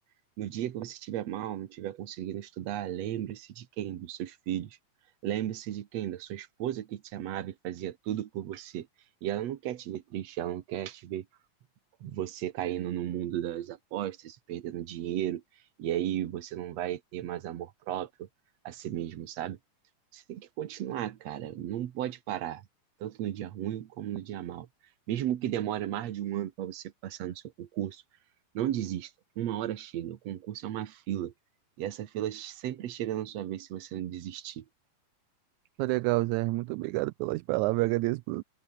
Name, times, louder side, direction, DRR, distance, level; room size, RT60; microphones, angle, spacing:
voice 1, 0.4-4.8 5.2-8.9 9.2-11.3 12.0-15.4 15.8-18.3 18.6-19.6 20.1-22.6 23.0-24.7 25.1-28.0 28.5-29.1 29.4-31.3 31.8-34.6, right 12 dB, 65° right, 2.4 m, -35 dB
voice 2, 35.8-38.4, right 21 dB, 80° right, 1.9 m, -28 dB
open air
omnidirectional pair, 3.5 m